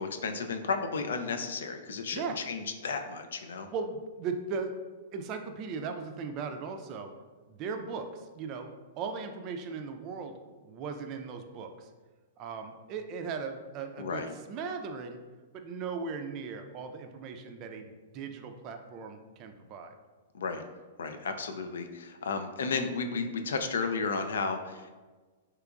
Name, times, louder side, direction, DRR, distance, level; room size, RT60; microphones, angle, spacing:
voice 1, 0.0-3.7 14.0-14.3 20.3-20.6 21.0-24.9, left 4 dB, 80° left, 7 dB, 0.3 m, -33 dB
voice 2, 3.7-4.7 5.1-7.1 7.5-8.7 8.9-10.4 10.6-11.9 12.4-14.2 14.5-15.2 15.5-19.9, right 5 dB, 40° right, 6 dB, 0.3 m, -38 dB
3.4 x 3.0 x 2.4 m, 1.3 s
hypercardioid pair, 120°, 0 cm